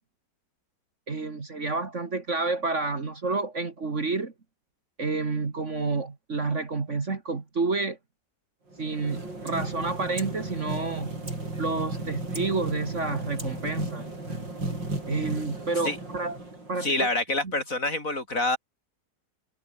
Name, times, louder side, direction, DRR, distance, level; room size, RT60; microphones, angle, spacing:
voice 1, 1.1-4.3 5.0-8.0 8.8-11.2 11.6-14.1 15.1-16.4 16.7-17.1, right 3 dB, 40° right, 2.4 m, -29 dB
sound 1, 8.7-17.0, right 2 dB, 85° right, 8.4 m, -35 dB
voice 2, 16.8-18.6, left 2 dB, 45° left, 5.2 m, -26 dB
omnidirectional pair, 1.9 m